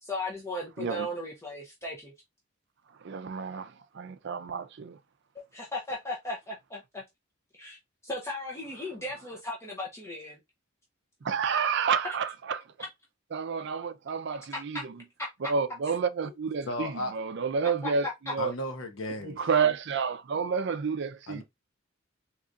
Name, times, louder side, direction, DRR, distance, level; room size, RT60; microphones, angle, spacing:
voice 1, 0.0-2.1 5.5-7.0 7.5-7.8 8.0-10.4 12.0-12.1 14.5-14.8 17.8-18.3, left 1 dB, 15° left, 0.7 m, -36 dB
voice 2, 3.0-5.0 11.2-12.6 13.3-14.9 15.5-18.5 19.2-21.4, right 6 dB, 60° right, 0.4 m, -30 dB
voice 3, 16.7-17.1 18.4-19.4 21.3-21.4, left 1 dB, 75° left, 0.9 m, -34 dB
3.8 x 3.0 x 2.4 m
head